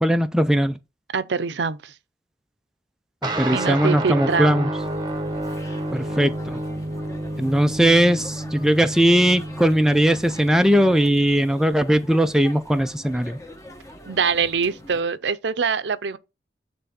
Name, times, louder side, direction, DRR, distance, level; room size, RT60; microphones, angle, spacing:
voice 1, 0.0-0.7 3.2-4.7 5.9-6.6 7.4-13.4, equal, 5° right, 0.4 m, -19 dB
voice 2, 1.1-1.9 3.5-4.7 14.1-16.2, right 5 dB, 80° right, 0.6 m, -24 dB
sound 1, 3.2-11.0, right 1 dB, 25° right, 0.8 m, -30 dB
sound 2, 4.8-15.0, left 1 dB, 20° left, 1.0 m, -43 dB
9.0 x 3.4 x 4.2 m
head